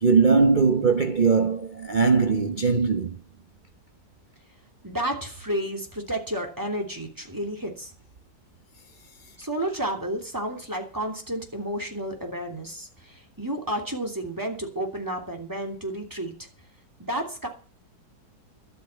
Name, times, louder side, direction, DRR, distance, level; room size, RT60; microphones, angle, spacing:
voice 1, 0.0-3.2, right 5 dB, 35° right, 0.8 m, -20 dB
voice 2, 4.8-7.9 9.4-16.5 17.0-17.5, right 1 dB, 10° right, 3.0 m, -31 dB
12.5 x 8.0 x 8.3 m
omnidirectional pair, 1.9 m